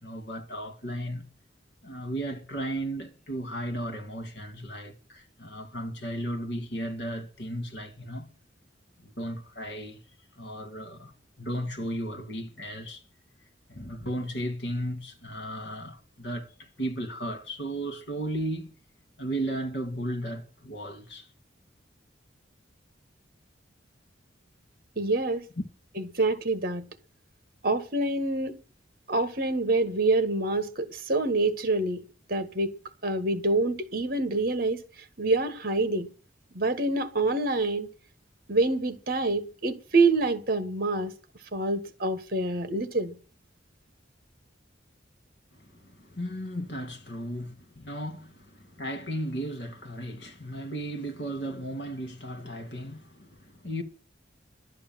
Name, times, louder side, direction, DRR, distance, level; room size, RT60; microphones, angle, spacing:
voice 1, 0.0-1.3 1.8-8.3 9.0-10.0 10.4-11.1 11.4-13.0 13.7-18.7 19.2-21.3 45.5-53.8, right 1 dB, 65° left, 2.8 m, -35 dB
voice 2, 25.0-25.4 26.0-26.8 27.6-28.6 29.1-32.0 32.3-32.7 33.0-34.8 35.2-36.1 36.6-37.9 38.5-41.1 41.5-43.1, right 2 dB, 50° right, 1.8 m, -26 dB
12.0 x 8.7 x 7.6 m
head